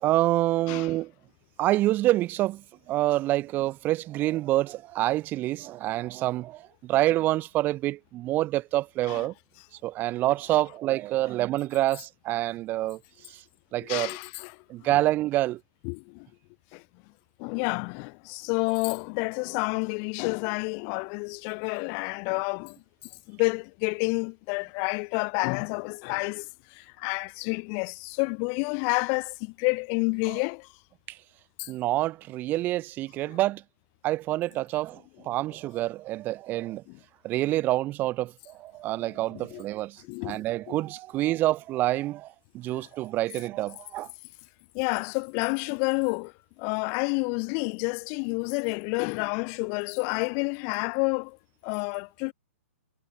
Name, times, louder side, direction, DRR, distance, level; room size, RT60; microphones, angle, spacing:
voice 1, 0.0-1.1 1.6-9.3 9.8-13.0 13.3-13.4 13.7-14.2 14.7-15.6 31.1-31.2 31.7-33.6 34.0-36.8 37.2-44.1, right 16 dB, 25° right, 1.3 m, -27 dB
voice 2, 13.9-14.5 15.8-16.3 16.7-16.8 17.4-22.8 23.3-30.7 31.6-31.7 33.3-33.4 36.9-37.0 39.3-39.6 40.0-40.8 42.7-42.9 44.7-46.3 46.6-51.4 51.6-52.3, left 40 dB or more, 35° left, 5.0 m, -29 dB
figure-of-eight pair, 120°, 8 cm